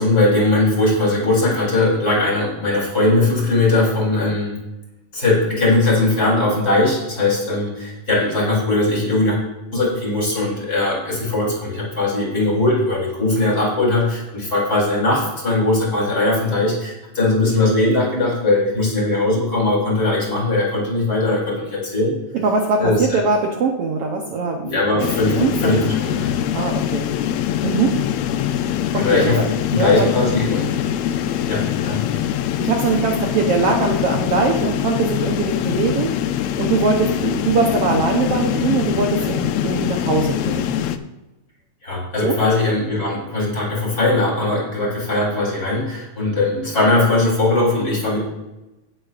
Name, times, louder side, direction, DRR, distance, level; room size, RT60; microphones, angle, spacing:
voice 1, 0.0-4.6 5.1-9.4 9.7-22.2 22.8-23.2 24.6-26.3 29.0-29.4 29.7-30.8 31.1-32.0 41.8-48.2, left 2 dB, 30° left, -5 dB, 4.0 m, -19 dB
voice 2, 22.4-25.8 26.5-27.1 27.6-28.0 28.9-29.5 29.7-30.1 32.6-36.1 36.6-40.7 42.2-42.4, right 4 dB, 65° right, 1 dB, 1.7 m, -21 dB
sound 1, 25.0-41.0, left 10 dB, 80° left, 1.5 m, -23 dB
17.5 x 7.6 x 2.5 m, 1.0 s
omnidirectional pair, 3.5 m